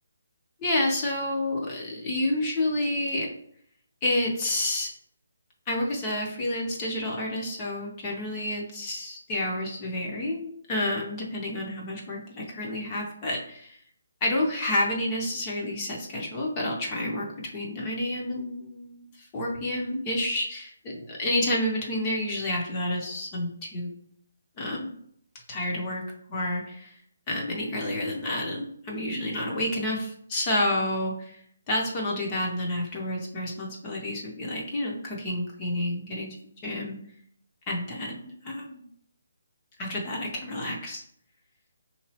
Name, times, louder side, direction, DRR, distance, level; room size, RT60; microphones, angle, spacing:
voice 1, 0.6-3.3 4.0-4.9 5.7-13.8 14.2-17.3 17.5-19.1 19.3-23.9 24.6-24.9 25.5-26.0 26.3-26.9 27.3-31.4 31.7-36.4 36.6-37.0 37.7-38.9 39.8-41.0, left 1 dB, 15° left, -2 dB, 0.5 m, -29 dB
5.0 x 3.0 x 2.8 m, 0.67 s
hypercardioid pair, 175°, 0 cm